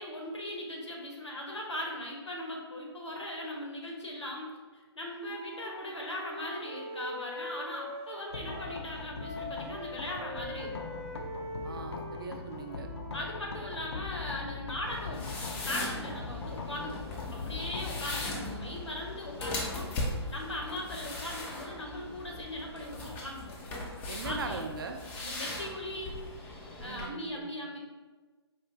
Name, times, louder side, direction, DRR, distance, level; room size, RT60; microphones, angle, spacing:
voice 1, 0.0-10.8 13.1-23.6 24.2-24.6 25.2-26.3 26.8-27.8, left 1 dB, 85° left, -1 dB, 1.0 m, -39 dB
Wind instrument woodwind instrument, 5.1-8.8 9.2-13.2, equal, 25° right, 0.8 m, -42 dB
sound 1, 8.3-22.2, left 4 dB, 70° left, 0.5 m, -42 dB
voice 2, 11.6-12.9 24.1-25.0 26.8-27.5, right 4 dB, 55° right, 5 dB, 0.5 m, -40 dB
sound 2, 14.8-27.1, left 2 dB, 10° left, 0.3 m, -39 dB
4.4 x 2.4 x 3.2 m, 1.3 s
figure-of-eight pair, 135°, 14 cm